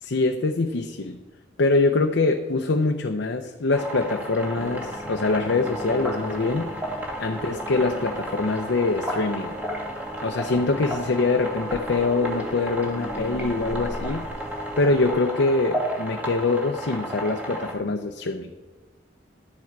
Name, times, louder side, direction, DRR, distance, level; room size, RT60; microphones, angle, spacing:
voice 1, 0.0-1.2 1.6-6.7 7.2-9.5 10.2-14.3 14.8-18.5, left 3 dB, 90° left, 5 dB, 0.6 m, -24 dB
sound 1, 3.7-17.7, equal, 10° right, 1.7 m, -33 dB
sound 2, 4.5-15.1, equal, 15° left, 1.4 m, -39 dB
11.5 x 7.3 x 4.6 m, 1.2 s
head